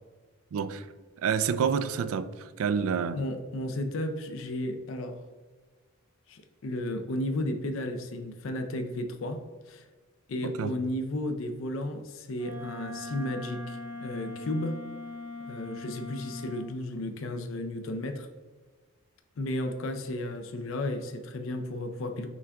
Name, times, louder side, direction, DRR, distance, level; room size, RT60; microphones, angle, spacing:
voice 1, 0.5-0.9 1.2-3.2 10.4-10.7, right 6 dB, 80° right, 13 dB, 0.3 m, -28 dB
voice 2, 3.1-5.2 6.3-9.9 10.3-14.8 15.5-18.3 19.4-22.3, left 1 dB, 65° left, 6 dB, 0.5 m, -33 dB
Wind instrument woodwind instrument, 12.3-16.7, left 2 dB, 10° right, 0.7 m, -40 dB
6.1 x 3.4 x 2.4 m, 1.4 s
head